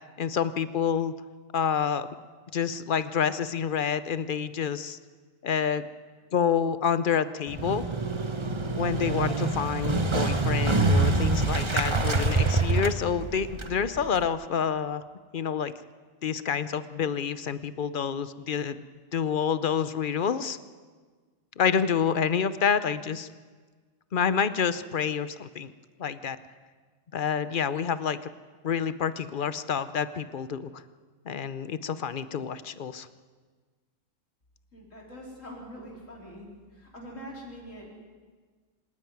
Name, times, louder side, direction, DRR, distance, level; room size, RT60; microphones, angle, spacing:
voice 1, 0.2-1.1 1.5-2.1 2.5-5.0 5.4-5.9 6.3-7.8 8.8-15.0 15.3-15.7 16.2-18.9 19.1-20.6 21.6-23.3 24.1-25.7 26.0-26.4 27.1-28.3 28.6-30.8 31.3-33.1, left 7 dB, 50° left, 14 dB, 0.7 m, -28 dB
Motorcycle, 7.5-14.3, right 3 dB, 25° right, 1.0 m, -26 dB
voice 2, 34.7-36.5 36.7-37.9, equal, 65° left, -2 dB, 4.6 m, -43 dB
26.0 x 10.5 x 9.5 m, 1.5 s
omnidirectional pair, 1.4 m